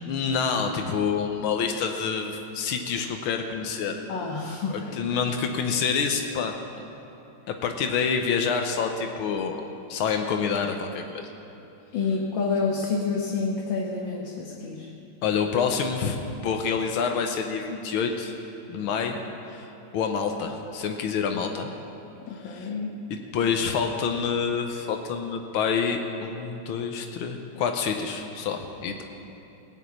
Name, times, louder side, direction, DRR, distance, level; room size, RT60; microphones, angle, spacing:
voice 1, 0.1-4.0 4.7-6.6 7.5-9.6 9.9-11.2 15.2-16.2 16.4-18.3 18.7-19.2 19.5-19.7 19.9-21.7 22.4-22.7 23.1-29.0, left 6 dB, 85° left, 4 dB, 1.7 m, -27 dB
voice 2, 4.1-5.0 11.9-14.9 22.3-23.0, left 4 dB, 65° left, -2 dB, 1.9 m, -28 dB
18.5 x 6.6 x 8.5 m, 2.9 s
omnidirectional pair, 2.3 m